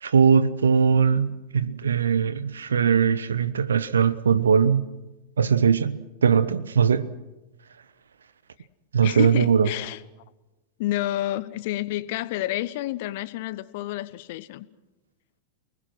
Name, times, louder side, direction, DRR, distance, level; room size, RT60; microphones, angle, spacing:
voice 1, 0.0-4.9 5.4-7.1 8.9-9.7, right 6 dB, 70° right, 1.0 m, -20 dB
voice 2, 9.0-10.0 10.8-14.7, left 15 dB, 50° left, 1.1 m, -29 dB
29.5 x 20.0 x 6.3 m
figure-of-eight pair, 90°, 0 cm